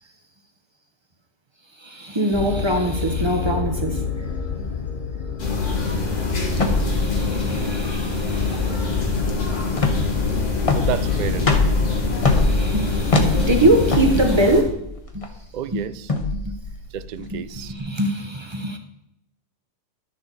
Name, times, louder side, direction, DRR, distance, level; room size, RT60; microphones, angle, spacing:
voice 1, 1.7-4.3 4.6-4.7 6.5-8.8 12.2-14.8 15.1-15.2 15.7-15.8 16.3-16.5 17.2-18.8, right 1 dB, 25° right, 0.9 m, -23 dB
sound 1, 2.3-14.3, left 6 dB, 45° left, 0.9 m, -28 dB
sound 2, 5.4-14.6, left 2 dB, 75° left, 2.0 m, -26 dB
sound 3, 6.5-17.7, left 2 dB, 30° left, 1.0 m, -24 dB
voice 2, 10.8-11.8 15.5-16.1 16.9-17.7, right 9 dB, 70° right, 0.4 m, -30 dB
11.5 x 6.6 x 4.0 m
omnidirectional pair, 1.3 m